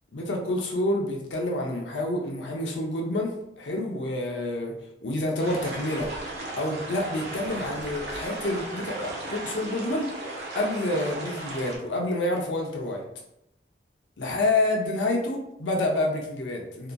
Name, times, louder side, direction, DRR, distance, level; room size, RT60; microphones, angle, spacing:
voice 1, 0.1-4.7 5.0-6.1 6.6-10.1 10.5-13.0 14.2-16.9, left 1 dB, 85° left, 1 dB, 0.5 m, -28 dB
sound 1, 5.4-11.8, right 2 dB, 65° right, 0.6 m, -36 dB
2.8 x 2.5 x 2.2 m, 0.81 s
head